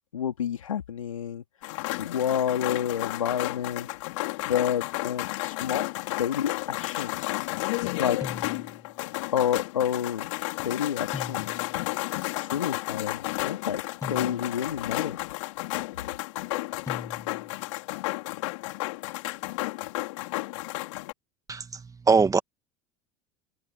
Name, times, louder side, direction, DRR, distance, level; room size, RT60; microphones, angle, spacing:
voice 1, 0.1-1.4 1.9-3.9 4.5-5.9 6.2-7.4 8.0-8.2 9.3-10.3 10.6-11.6 12.4-13.8 14.1-15.2, left 9 dB, 85° left, 3.2 m, -29 dB
sound 1, 1.6-21.1, left 21 dB, 70° left, 4.0 m, -32 dB
sound 2, 8.2-9.0 11.1-11.9 14.0-14.8 16.9-17.6, left 4 dB, 20° left, 6.9 m, -40 dB
voice 2, 21.5-22.4, right 5 dB, 20° right, 2.2 m, -22 dB
open air
hypercardioid pair, 80°, 16 cm